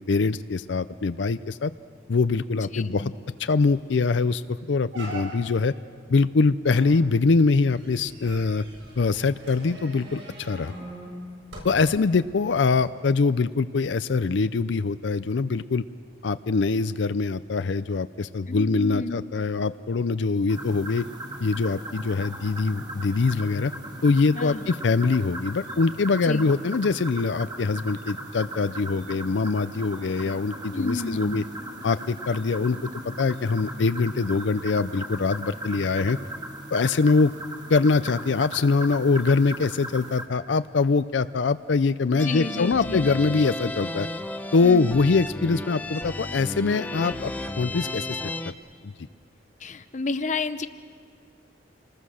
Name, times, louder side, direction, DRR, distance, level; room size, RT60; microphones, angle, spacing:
voice 1, 0.0-1.7 2.1-3.1 3.4-5.7 6.1-8.6 9.0-10.7 11.6-15.8 16.2-21.0 21.4-23.7 24.0-31.4 31.8-32.8 33.2-36.2 36.7-37.3 37.7-44.1 44.5-48.3 48.8-48.9, left 4 dB, 80° left, 13 dB, 0.5 m, -23 dB
voice 2, 2.5-3.1 18.5-19.2 24.4-24.7 26.2-26.5 30.7-31.4 42.1-43.1 44.6-44.9 49.6-50.7, left 3 dB, 40° left, 11 dB, 0.8 m, -31 dB
sound 1, 3.2-3.3 3.6-3.9 4.3-4.4 4.9-5.7 6.7-12.2 12.8-12.9, right 1 dB, 80° right, 7.2 m, -42 dB
sound 2, 20.5-40.2, right 1 dB, 20° right, 2.1 m, -38 dB
sound 3, 42.2-48.5, left 2 dB, 10° left, 0.8 m, -34 dB
28.5 x 20.5 x 6.4 m, 2.2 s
head